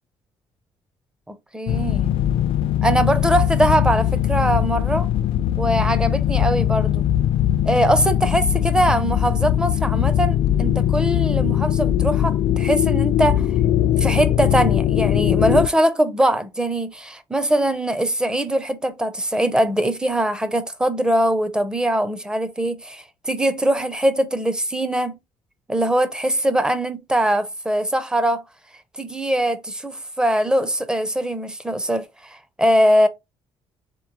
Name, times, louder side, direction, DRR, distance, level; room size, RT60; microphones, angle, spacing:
voice 1, 1.3-2.1 2.8-5.1 5.6-7.1 7.6-13.5 14.0-25.2 25.7-28.4 28.9-33.1, right 1 dB, 10° right, 0.5 m, -21 dB
sound 1, 1.7-15.7, left 11 dB, 65° left, 0.3 m, -20 dB
3.8 x 3.0 x 3.8 m
cardioid pair, 125°, 10 cm